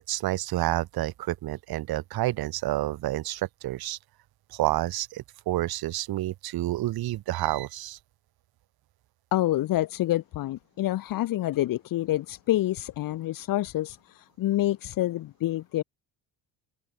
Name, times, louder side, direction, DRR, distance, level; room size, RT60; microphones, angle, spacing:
voice 1, 0.1-4.0 4.5-8.0, right 15 dB, 65° right, 2.2 m, -29 dB
voice 2, 9.3-15.8, left 15 dB, 55° left, 1.2 m, -27 dB
cardioid pair, 155°, 39 cm